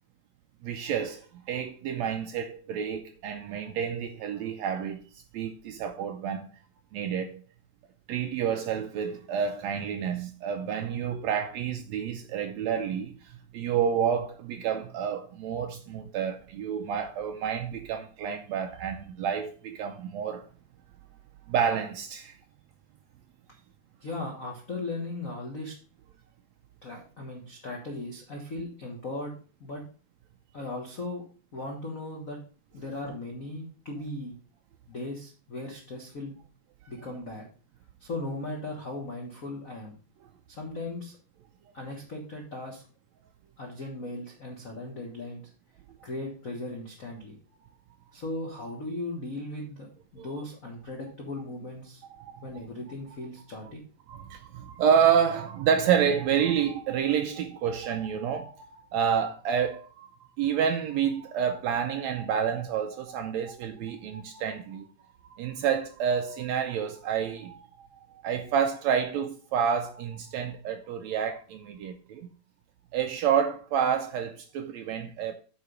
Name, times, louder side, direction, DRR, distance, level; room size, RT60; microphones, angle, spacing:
voice 1, 0.6-5.0 5.3-6.5 6.9-7.4 8.1-20.5 21.5-22.4 50.2-50.3 52.2-52.4 54.1-60.1 60.4-64.9 65.2-67.7 68.2-72.3 72.9-75.3, right 8 dB, 85° right, 1.6 m, -29 dB
voice 2, 24.0-25.7 26.8-29.3 29.6-29.8 30.5-31.2 31.5-32.4 32.7-34.4 34.9-36.4 36.9-37.5 38.0-39.9 40.5-41.2 41.7-42.8 43.6-45.5 46.0-47.4 48.1-49.9 50.1-52.0 52.4-53.8, left 2 dB, 75° left, 0.7 m, -37 dB
8.4 x 4.1 x 5.0 m
omnidirectional pair, 3.7 m